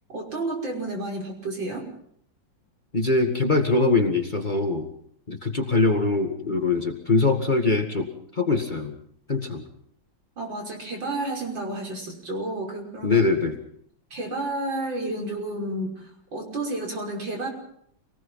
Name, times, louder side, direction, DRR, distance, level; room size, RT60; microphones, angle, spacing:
voice 1, 0.1-1.8 10.4-13.2 14.1-15.9 16.3-17.5, right 2 dB, 70° right, 1 dB, 6.5 m, -31 dB
voice 2, 2.9-4.9 5.3-8.9 9.3-9.7 13.0-13.6, left 3 dB, 25° left, 5 dB, 2.2 m, -23 dB
27.5 x 19.0 x 5.7 m, 0.65 s
omnidirectional pair, 2.1 m